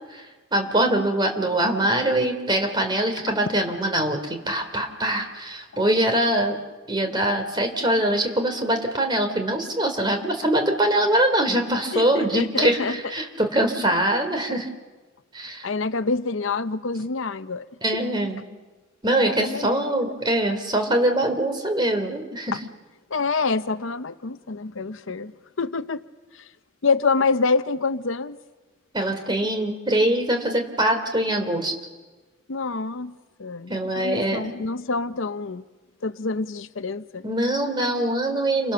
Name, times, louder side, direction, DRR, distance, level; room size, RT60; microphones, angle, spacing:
voice 1, 0.5-6.6 6.9-14.7 15.3-15.6 17.8-18.4 19.0-22.6 28.9-31.8 33.7-34.5 37.2-38.7, right 1 dB, 20° right, 5 dB, 3.3 m, -23 dB
voice 2, 11.9-13.0 15.6-17.7 17.9-18.0 19.1-20.2 23.1-25.3 25.6-26.0 26.3-26.5 26.8-28.4 32.5-33.1 33.4-35.6 36.0-37.2, left 4 dB, 65° left, 12 dB, 0.8 m, -26 dB
29.0 x 24.0 x 6.9 m, 1.3 s
head